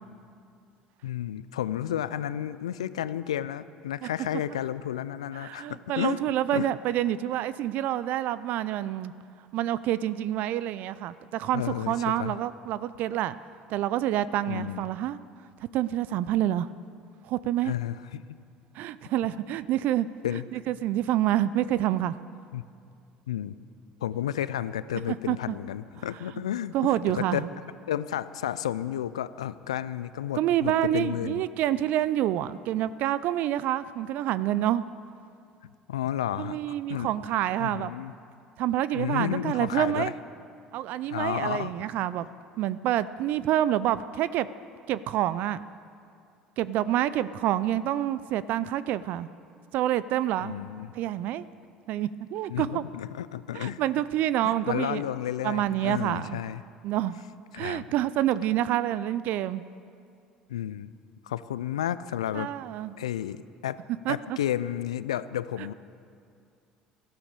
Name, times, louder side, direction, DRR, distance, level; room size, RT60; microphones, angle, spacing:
voice 1, 1.0-6.2 6.5-6.7 11.5-12.4 14.5-14.8 17.6-18.4 20.2-20.5 22.5-22.6 23.3-23.6 24.0-27.4 27.9-31.4 35.9-36.6 36.9-37.1 37.6-38.1 38.9-40.1 41.1-41.7 50.4-50.9 52.5-53.8 54.4-56.6 57.5-57.9 60.5-60.9 61.2-62.5 63.0-63.8 64.1-65.7, left 11 dB, 85° left, 15 dB, 0.5 m, -32 dB
voice 2, 5.3-9.1 9.5-13.3 13.7-15.2 15.7-16.7 17.2-17.8 18.7-20.1 20.5-22.2 25.1-25.5 26.7-27.5 30.4-34.8 36.4-37.9 38.6-40.1 40.7-42.3 42.6-44.5 44.9-45.6 46.6-49.3 49.7-50.6 50.9-51.4 51.9-52.8 53.5-55.0 55.4-56.4 56.8-57.2 57.6-59.6 62.3-62.9 64.1-64.4, right 12 dB, 60° right, 16 dB, 0.5 m, -27 dB
16.5 x 12.5 x 6.7 m, 2.4 s
hypercardioid pair, 65°, 3 cm